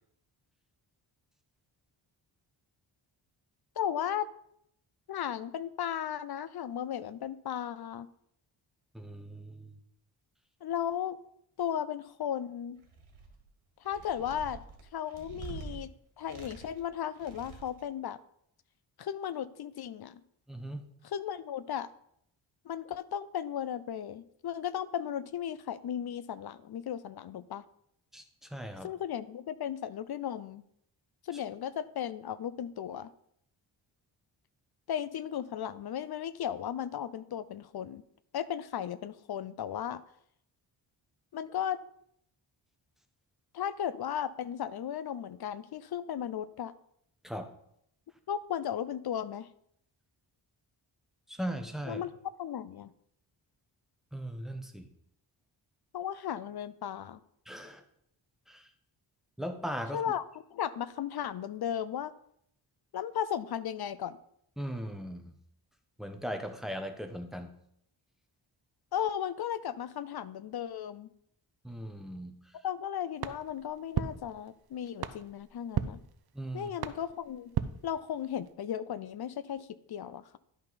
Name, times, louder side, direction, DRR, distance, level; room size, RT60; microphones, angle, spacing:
voice 1, 3.8-4.3 5.1-8.1 10.6-11.2 11.6-12.8 13.8-14.6 14.9-15.9 16.2-18.2 19.0-20.2 21.0-21.9 22.7-27.6 28.8-30.6 31.2-33.1 34.9-38.0 38.3-40.0 41.3-41.8 43.5-46.7 48.3-49.5 51.9-52.1 52.4-52.9 55.9-57.2 59.9-60.2 60.5-62.1 62.9-64.2 68.9-71.1 72.6-76.0 76.5-77.6 77.8-80.2, left 9 dB, 55° left, 16 dB, 0.5 m, -35 dB
voice 2, 8.9-9.7 20.5-20.8 28.1-28.9 47.2-47.5 51.3-52.0 54.1-54.9 57.5-57.8 58.5-58.7 59.4-60.0 64.6-65.3 66.0-67.5 71.6-72.3 76.3-76.7, equal, ahead, 5 dB, 0.8 m, -38 dB
sound 1, 12.8-13.4 13.8-15.8 16.2-16.9 17.2-17.8, right 5 dB, 75° right, 1.8 m, -46 dB
sound 2, 73.2-78.5, right 9 dB, 50° right, 0.6 m, -38 dB
11.0 x 5.5 x 4.0 m, 0.73 s
wide cardioid pair, 125°, 49 cm